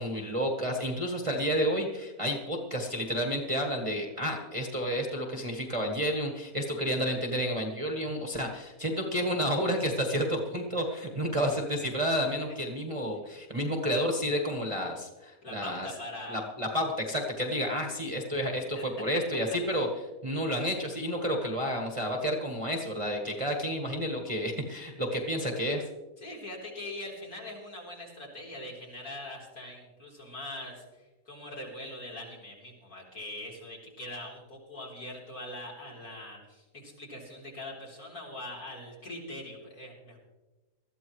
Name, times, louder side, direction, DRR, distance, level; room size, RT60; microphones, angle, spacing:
voice 1, 0.0-15.9 16.3-19.9 20.2-25.8, equal, 20° right, 1 dB, 1.3 m, -30 dB
voice 2, 15.4-16.4 18.7-18.9 19.1-19.2 19.7-19.8 26.2-40.2, left 1 dB, 65° left, -3 dB, 4.2 m, -42 dB
20.0 x 13.5 x 3.1 m, 1.1 s
omnidirectional pair, 1.7 m